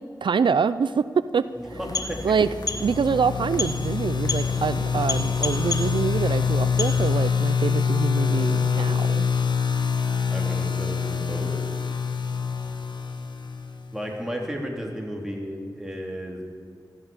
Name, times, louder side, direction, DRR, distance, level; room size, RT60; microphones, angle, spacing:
voice 1, 0.2-1.1 1.3-1.4 1.7-1.8 2.2-2.5 2.8-9.3, right 6 dB, 80° right, 14 dB, 0.4 m, -25 dB
sound 1, 1.6-7.4, left 3 dB, 50° left, 1.4 m, -32 dB
voice 2, 1.8-2.3 10.3-11.5 13.9-16.4, equal, 5° right, 0 dB, 3.4 m, -33 dB
sound 2, 2.2-14.0, left 6 dB, 70° left, 1.2 m, -25 dB
15.5 x 12.5 x 7.2 m, 2.2 s
wide cardioid pair, 65°, 8 cm